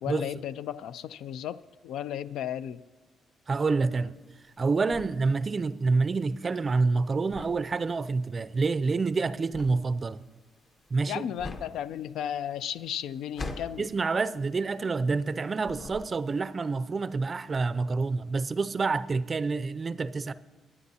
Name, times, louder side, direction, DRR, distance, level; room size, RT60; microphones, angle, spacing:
voice 1, 0.0-2.8 11.1-13.9, left 10 dB, 80° left, 0.3 m, -34 dB
voice 2, 3.5-4.2 4.6-10.2 10.9-11.2 13.8-20.3, right 4 dB, 35° right, 0.4 m, -27 dB
sound 1, 4.1-15.3 15.6-16.5, left 2 dB, 45° left, 1.0 m, -44 dB
23.0 x 9.4 x 2.8 m
cardioid pair, 90°, 0 cm